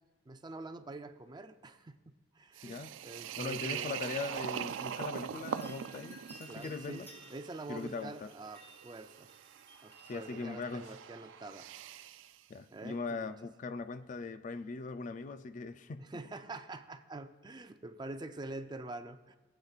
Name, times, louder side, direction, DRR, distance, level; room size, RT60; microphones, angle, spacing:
voice 1, 0.3-2.0 2.3-3.9 6.5-9.3 9.8-11.7 12.7-13.3 16.0-19.4, right 2 dB, 25° right, 9 dB, 0.5 m, -46 dB
sound 1, 2.5-12.3, right 9 dB, 85° right, 0.3 m, -43 dB
sound 2, 3.1-12.0 12.9-13.4 13.7-14.3 14.6-14.7, right 1 dB, 15° left, 2.0 m, -59 dB
voice 2, 3.4-7.1 7.7-8.3 10.0-10.9 12.5-16.1, left 4 dB, 40° left, 11 dB, 0.4 m, -40 dB
19.5 x 8.1 x 2.4 m, 1.3 s
head